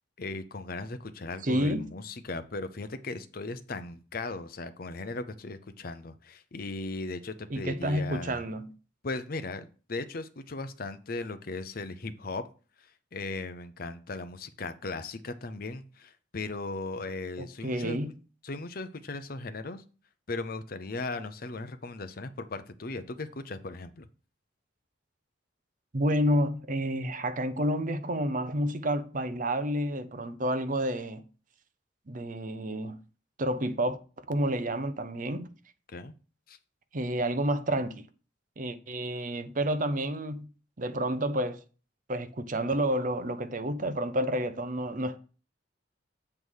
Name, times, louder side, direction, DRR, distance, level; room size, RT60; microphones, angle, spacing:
voice 1, 0.2-8.4 9.0-12.4 13.1-18.0 18.4-19.8 20.3-24.1 35.9-36.1 36.5-36.6, left 3 dB, 50° left, 0.7 m, -37 dB
voice 2, 1.4-1.9 7.5-8.7 17.4-18.1 25.9-31.2 32.1-33.0 33.4-34.0 34.3-35.5 36.9-38.0 38.6-40.5 40.8-41.6 42.1-45.2, right 1 dB, 45° right, 0.7 m, -29 dB
7.8 x 3.7 x 6.3 m
head